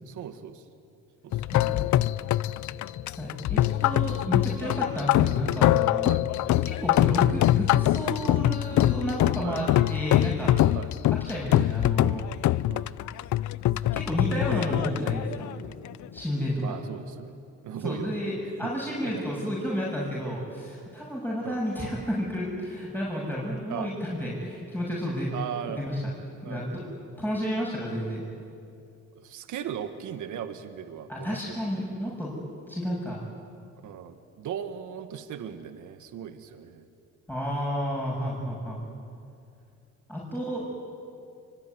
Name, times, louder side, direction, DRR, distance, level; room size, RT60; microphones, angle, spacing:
voice 1, 0.1-0.7 1.2-1.4 6.0-6.2 9.4-9.6 10.7-10.9 12.7-12.9 16.6-17.4 17.6-18.7 19.0-19.2 21.4-21.6 23.7-23.9 25.3-25.9 26.4-26.8 29.1-31.6 33.8-36.9 38.6-39.0, right 9 dB, 80° right, 8 dB, 1.9 m, -38 dB
sound 1, 1.3-16.2, left 14 dB, 70° left, 0.6 m, -24 dB
voice 2, 1.5-1.8 3.2-6.1 6.6-10.6 11.3-12.2 13.9-15.5 16.1-16.8 17.8-25.3 25.7-26.0 26.4-26.8 27.2-28.2 31.1-32.3 32.7-33.2 37.3-38.8 40.1-40.8, equal, 5° left, -5 dB, 7.4 m, -31 dB
25.0 x 24.5 x 9.6 m, 2.5 s
cardioid pair, 90°, 30 cm